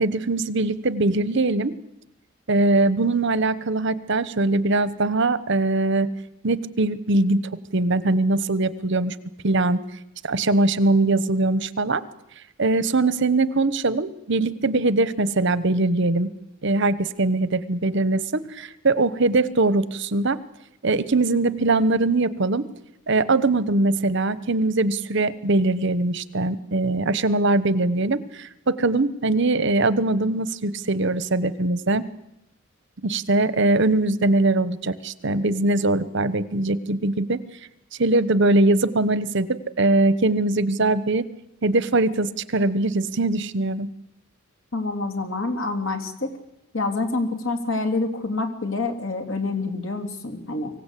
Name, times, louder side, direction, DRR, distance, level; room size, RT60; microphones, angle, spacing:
voice 1, 0.0-1.7 2.5-6.1 6.4-7.4 7.7-9.1 9.4-9.8 10.2-12.0 12.6-16.3 16.6-20.4 20.8-22.6 23.1-32.0 33.0-37.4 38.0-41.3 41.6-43.9, right 2 dB, 60° right, 15 dB, 1.1 m, -21 dB
voice 2, 44.7-46.3 46.7-50.7, left 3 dB, 80° left, 6 dB, 3.4 m, -27 dB
24.5 x 17.0 x 8.4 m, 0.84 s
head